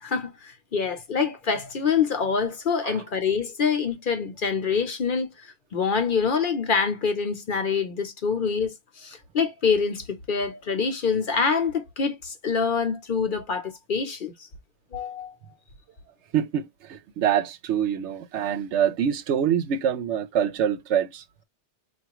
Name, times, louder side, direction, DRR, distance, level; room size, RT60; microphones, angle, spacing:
voice 1, 0.0-14.3 14.9-15.4, left 5 dB, 50° left, 0.8 m, -26 dB
voice 2, 16.3-21.2, right 9 dB, 80° right, 0.9 m, -25 dB
4.7 x 2.4 x 2.9 m
omnidirectional pair, 1.2 m